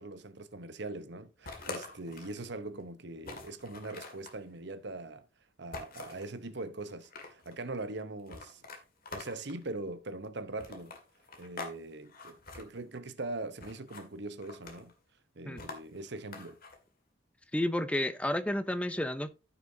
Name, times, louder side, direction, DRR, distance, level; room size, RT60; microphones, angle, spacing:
voice 1, 0.0-5.2 5.6-8.6 9.1-10.9 11.4-14.9 15.4-16.6, right 2 dB, 60° right, 1.0 m, -41 dB
sound 1, 1.4-2.4 2.8-2.9 3.2-4.4 5.7-6.3 6.9-7.5 8.3-9.6 10.6-11.8 12.0-12.6 13.6-14.1 14.4-14.9 15.6-16.8, left 3 dB, 50° left, 2.1 m, -45 dB
voice 2, 17.5-19.3, left 1 dB, 5° left, 0.6 m, -31 dB
14.5 x 6.0 x 2.8 m
head